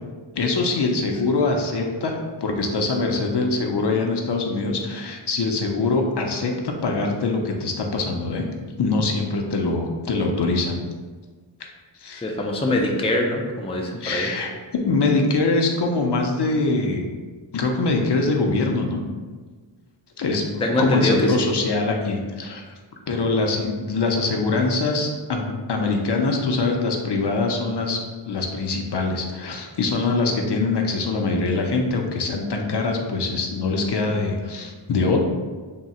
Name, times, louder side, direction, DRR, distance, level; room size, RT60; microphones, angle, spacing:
voice 1, 0.4-8.4 8.8-10.8 12.0-12.2 14.0-14.5 14.8-17.0 17.5-19.0 20.2-22.6 23.1-28.0 28.3-35.2, left 3 dB, 55° left, 2 dB, 0.6 m, -23 dB
voice 2, 12.2-14.3 20.6-21.4, left 1 dB, 15° left, 1 dB, 0.4 m, -23 dB
3.6 x 2.1 x 4.1 m, 1.4 s
wide cardioid pair, 60°, 48 cm